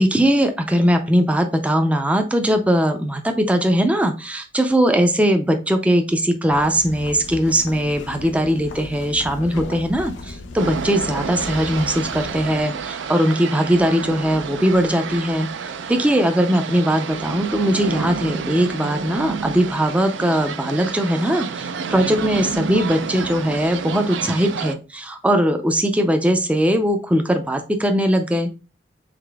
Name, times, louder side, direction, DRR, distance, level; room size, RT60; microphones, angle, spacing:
voice 1, 0.0-28.5, equal, 5° right, 6 dB, 0.4 m, -20 dB
sound 1, 6.5-12.6, left 2 dB, 75° left, 0.6 m, -36 dB
sound 2, 10.6-24.8, right 5 dB, 70° right, 0.4 m, -30 dB
4.9 x 3.8 x 2.2 m, 0.31 s
head